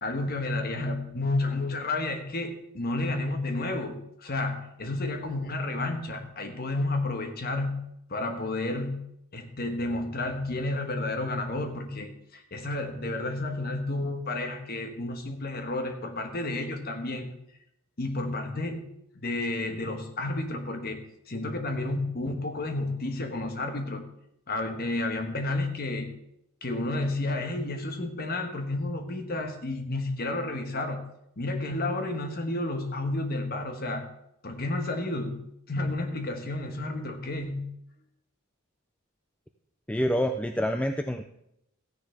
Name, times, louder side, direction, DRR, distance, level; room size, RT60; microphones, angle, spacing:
voice 1, 0.0-7.8 8.1-9.0 9.3-17.3 18.0-18.9 19.1-24.0 24.5-26.1 26.6-31.0 31.4-34.1 34.4-35.4 35.7-37.7, left 2 dB, 45° left, 5 dB, 1.3 m, -31 dB
voice 2, 39.9-41.3, equal, 5° left, 6 dB, 0.3 m, -27 dB
15.0 x 10.0 x 3.4 m, 0.80 s
head